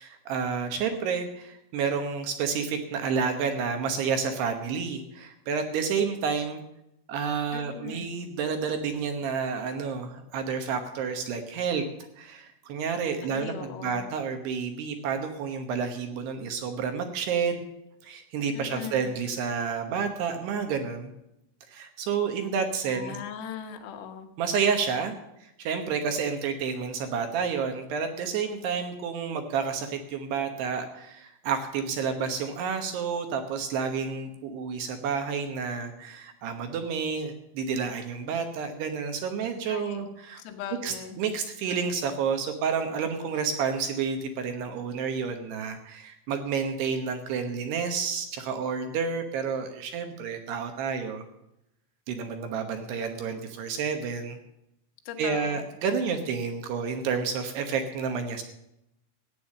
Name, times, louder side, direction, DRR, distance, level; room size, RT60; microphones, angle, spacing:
voice 1, 0.0-6.6 7.1-11.8 12.2-17.6 18.0-21.1 21.7-23.2 24.4-25.1 25.4-40.4 40.8-51.2 52.1-54.4 55.2-58.4, right 6 dB, 70° right, 6 dB, 2.6 m, -30 dB
voice 2, 7.5-8.1 13.2-14.2 18.5-19.1 22.9-24.3 39.7-40.1 40.4-41.2 55.1-55.6, left 8 dB, 85° left, 5 dB, 4.0 m, -39 dB
14.5 x 9.2 x 6.5 m, 0.84 s
omnidirectional pair, 6.0 m